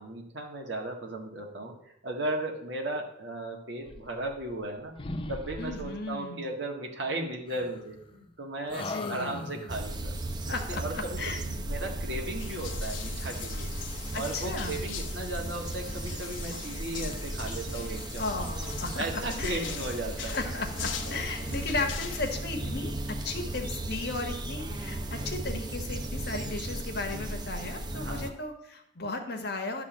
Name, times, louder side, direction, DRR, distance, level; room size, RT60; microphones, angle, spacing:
voice 1, 0.0-4.9 5.3-10.1 10.7-13.7 14.1-18.2 19.0-20.4 21.1-21.2 27.9-28.3, right 2 dB, 65° right, 1 dB, 1.7 m, -36 dB
sound 1, 3.8-4.7 5.0-6.1 7.5-8.3 8.7-9.9, left 2 dB, 25° left, 0.6 m, -40 dB
voice 2, 5.6-6.5 8.8-9.5 10.5-11.4 14.1-14.8 18.2-19.7 20.2-29.8, left 3 dB, 55° left, 4 dB, 1.4 m, -35 dB
sound 2, 9.7-28.3, right 1 dB, 20° right, 0.7 m, -36 dB
sound 3, 12.4-22.4, left 7 dB, 80° left, 1.1 m, -42 dB
11.0 x 3.7 x 7.3 m, 0.72 s
head